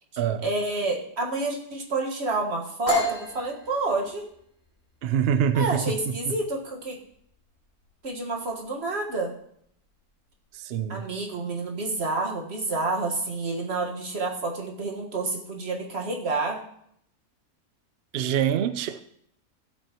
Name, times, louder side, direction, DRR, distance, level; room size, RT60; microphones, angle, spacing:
voice 1, 0.4-4.3 5.5-7.0 8.0-9.3 10.9-16.6, right 3 dB, 45° right, 1 dB, 1.8 m, -29 dB
sound 1, 2.9-10.5, left 1 dB, 35° left, 3.2 m, -34 dB
voice 2, 5.0-6.4 10.5-11.1 18.1-19.0, right 9 dB, 70° right, 11 dB, 0.5 m, -25 dB
15.0 x 8.2 x 3.0 m, 0.69 s
omnidirectional pair, 1.6 m